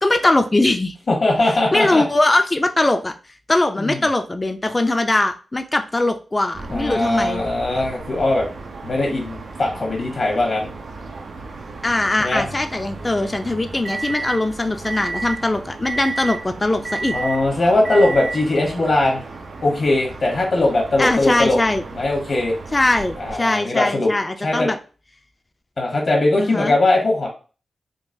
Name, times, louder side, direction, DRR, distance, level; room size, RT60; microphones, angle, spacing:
voice 1, 0.0-0.9 1.5-3.1 3.5-7.4 11.8-17.2 21.0-21.8 22.7-24.8 26.4-26.8, left 2 dB, 30° left, 6 dB, 0.4 m, -21 dB
voice 2, 1.1-2.0 3.8-4.0 6.7-8.5 8.8-10.7 12.2-12.5 17.1-19.2 19.6-21.6 21.9-22.5 23.2-24.1 24.4-24.7 25.8-27.3, left 2 dB, 65° left, -1 dB, 1.0 m, -20 dB
sound 1, 6.5-23.4, right 3 dB, 80° right, 0.5 m, -37 dB
sound 2, 12.3-14.4 14.8-15.4 15.8-16.4 16.8-17.4 17.8-18.4, right 3 dB, 45° right, 0.8 m, -30 dB
3.7 x 2.3 x 2.6 m, 0.36 s
cardioid pair, 45°, 0 cm